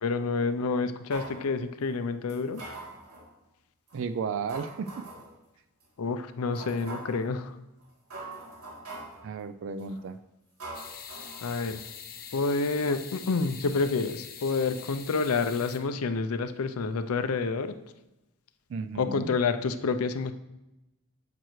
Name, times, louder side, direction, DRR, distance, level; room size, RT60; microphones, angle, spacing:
voice 1, 0.0-2.8 6.0-7.6 11.4-11.8 12.3-17.8 19.0-20.3, left 4 dB, 80° left, 10 dB, 0.5 m, -28 dB
sound 1, 1.1-1.4 2.3-3.3 3.9-4.0 4.5-5.3 5.8-5.9 6.6-7.2 7.8-9.2 9.8-10.1 10.6-11.8 12.1-12.2, right 2 dB, 80° right, 2.9 m, -43 dB
voice 2, 3.9-5.1 9.2-10.2 18.7-19.3, right 5 dB, 60° right, 12 dB, 0.3 m, -34 dB
sound 2, 10.7-15.8, left 7 dB, 45° left, 0.8 m, -44 dB
9.1 x 7.6 x 3.1 m, 0.98 s
head